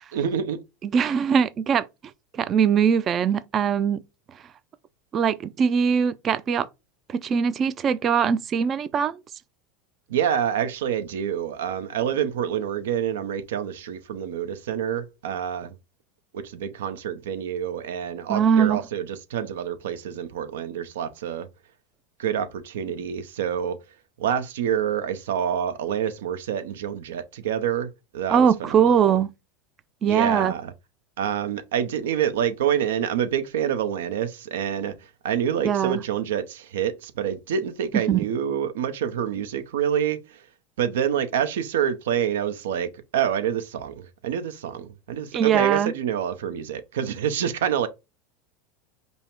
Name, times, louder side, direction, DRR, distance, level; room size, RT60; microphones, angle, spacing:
voice 1, 0.1-0.6 10.1-15.7 16.3-21.5 22.2-23.8 24.2-29.2 30.0-30.7 31.2-34.9 35.2-40.4 40.8-47.9, right 9 dB, 85° right, 0.7 m, -27 dB
voice 2, 0.8-1.8 2.3-4.0 5.1-6.7 7.1-9.2 18.3-18.8 28.3-29.3 30.0-30.5 35.6-36.0 37.9-38.2 45.3-45.9, right 7 dB, 35° right, 0.4 m, -21 dB
5.4 x 2.1 x 4.5 m
supercardioid pair, 115°, 0 cm